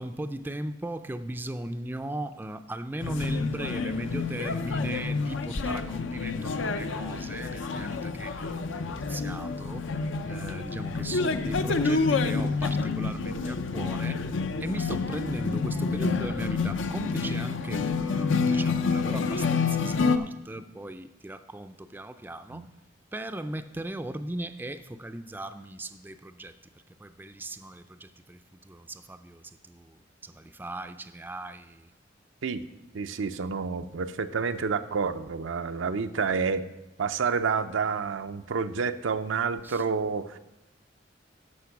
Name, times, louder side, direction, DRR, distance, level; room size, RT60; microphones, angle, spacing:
voice 1, 0.0-9.9 10.2-14.2 14.6-22.7 23.1-26.6 27.0-31.9 39.6-39.9, right 1 dB, 10° right, 9 dB, 0.3 m, -38 dB
sound 1, 3.0-20.2, left 4 dB, 80° left, 0.6 m, -28 dB
voice 2, 32.9-36.7 37.0-40.4, right 5 dB, 90° right, 9 dB, 0.6 m, -29 dB
13.0 x 5.3 x 5.8 m, 1.0 s
head